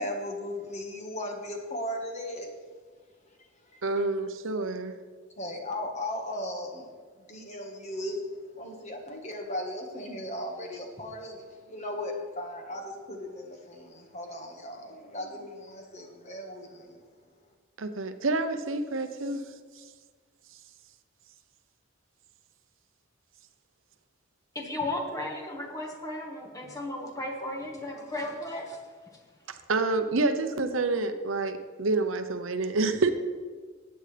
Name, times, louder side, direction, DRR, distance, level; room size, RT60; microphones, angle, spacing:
voice 1, 0.0-2.5 3.7-4.0 5.4-6.9 7.2-17.0, left 1 dB, 35° left, 2 dB, 1.5 m, -37 dB
voice 2, 3.8-5.0 17.8-19.4 29.5-33.1, right 3 dB, 75° right, 8 dB, 0.7 m, -28 dB
voice 3, 24.5-28.8, left 1 dB, 15° left, 0 dB, 1.5 m, -35 dB
15.0 x 9.0 x 3.4 m, 1.5 s
head